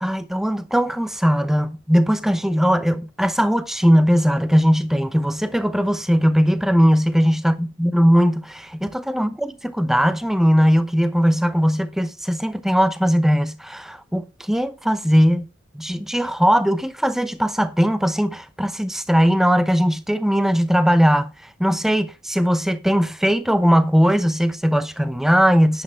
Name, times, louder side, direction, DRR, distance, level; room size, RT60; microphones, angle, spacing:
voice 1, 0.0-7.5 7.8-15.5 15.7-21.3 21.6-25.8, equal, ahead, 0.7 m, -19 dB
10.5 x 10.0 x 3.5 m
head